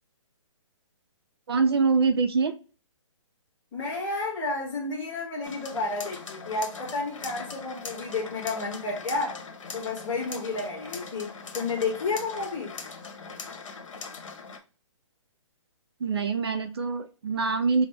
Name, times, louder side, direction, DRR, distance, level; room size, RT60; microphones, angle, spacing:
voice 1, 1.5-2.6 16.0-17.9, right 4 dB, 50° right, 0.4 m, -24 dB
voice 2, 3.7-9.4 9.7-12.8, left 3 dB, 10° left, 1.3 m, -31 dB
sound 1, 5.4-14.6, left 4 dB, 75° left, 1.1 m, -41 dB
5.0 x 2.0 x 3.2 m
hypercardioid pair, 170°, 16 cm